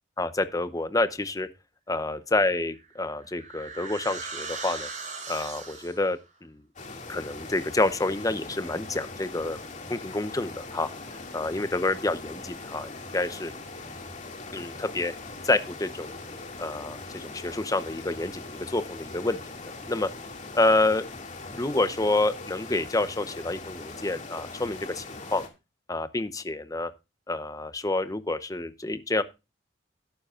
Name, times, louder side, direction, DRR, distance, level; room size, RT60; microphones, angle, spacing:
voice 1, 0.2-1.5 1.9-4.9 5.3-6.6 7.1-9.6 9.9-10.9 11.3-13.5 14.5-15.1 15.4-16.1 16.6-19.4 19.9-20.1 20.5-21.0 21.5-25.4 25.9-26.9 27.3-29.2, left 2 dB, 20° left, 12 dB, 0.8 m, -28 dB
sound 1, 2.7-6.1, right 4 dB, 40° right, 4.8 m, -38 dB
sound 2, 6.8-25.5, left 3 dB, 40° left, 2.3 m, -41 dB
12.0 x 11.5 x 2.5 m, 0.26 s
head